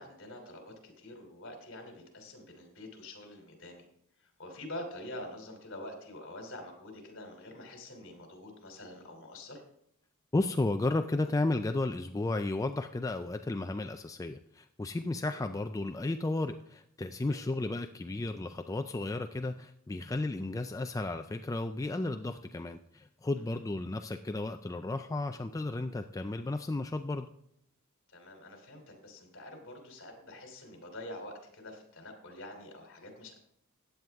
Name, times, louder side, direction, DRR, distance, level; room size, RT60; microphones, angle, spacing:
voice 1, 0.0-3.8 4.2-9.6 17.3-17.4 28.1-33.4, left 1 dB, 60° left, 4 dB, 3.1 m, -46 dB
voice 2, 10.3-27.3, left 2 dB, 15° left, 7 dB, 0.3 m, -33 dB
15.0 x 9.3 x 3.5 m, 0.72 s
head